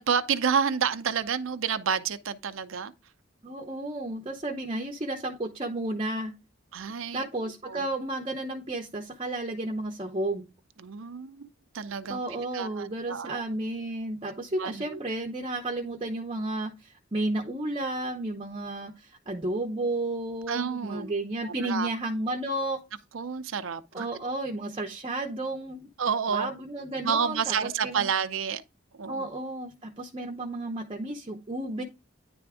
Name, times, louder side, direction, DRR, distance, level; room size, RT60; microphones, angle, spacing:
voice 1, 0.0-2.9 6.7-7.2 7.7-7.8 10.8-11.5 11.7-13.4 14.6-15.0 20.5-21.1 21.4-21.9 23.1-24.1 26.0-26.5 27.0-28.6 29.0-29.3, right 6 dB, 80° right, 0.6 m, -29 dB
voice 2, 3.4-6.3 7.1-10.5 12.1-22.8 23.9-25.9 26.3-28.1 29.1-31.8, right 2 dB, 25° right, 0.7 m, -32 dB
9.9 x 3.5 x 4.8 m
head